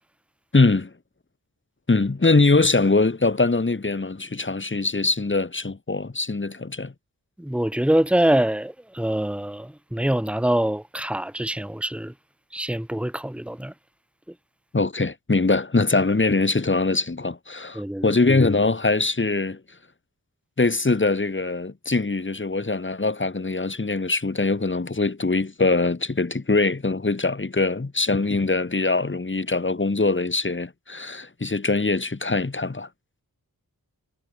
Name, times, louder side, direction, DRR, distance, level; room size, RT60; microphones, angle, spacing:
voice 1, 0.5-0.9 1.9-6.9 14.7-19.6 20.6-32.9, left 3 dB, 30° left, 2.0 m, -22 dB
voice 2, 7.4-12.1 12.5-13.7 17.7-18.1, right 1 dB, 5° right, 1.9 m, -24 dB
wide cardioid pair, 65°, 37 cm